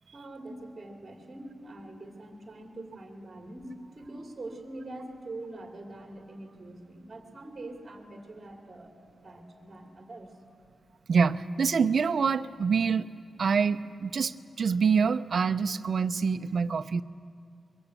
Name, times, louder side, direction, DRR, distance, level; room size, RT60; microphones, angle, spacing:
voice 1, 0.1-10.5, right 2 dB, 25° right, 1 dB, 2.7 m, -44 dB
voice 2, 11.1-13.1 13.4-17.0, right 5 dB, 55° right, 10 dB, 0.7 m, -26 dB
24.5 x 23.0 x 8.3 m, 2.5 s
wide cardioid pair, 175°, 0 cm